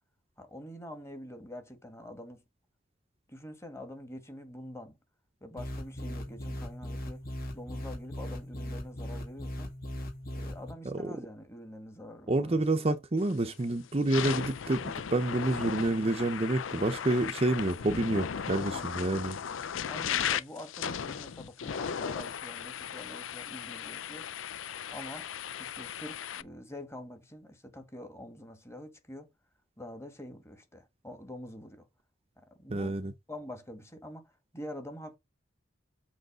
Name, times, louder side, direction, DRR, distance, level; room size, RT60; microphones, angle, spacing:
voice 1, 0.4-2.4 3.3-5.0 5.4-7.2 7.5-9.7 10.3-13.0 18.5-18.9 19.9-24.3 24.9-25.3 25.6-29.3 29.8-31.9 32.4-33.0 33.3-35.2, left 1 dB, 15° left, 1.8 m, -46 dB
sound 1, 5.6-10.7, left 1 dB, 50° left, 2.5 m, -39 dB
voice 2, 12.3-19.4 32.7-33.1, right 2 dB, 30° right, 0.7 m, -28 dB
sound 2, 13.2-13.5 13.9-26.4, left 8 dB, 80° left, 0.5 m, -36 dB
7.9 x 3.2 x 6.3 m
head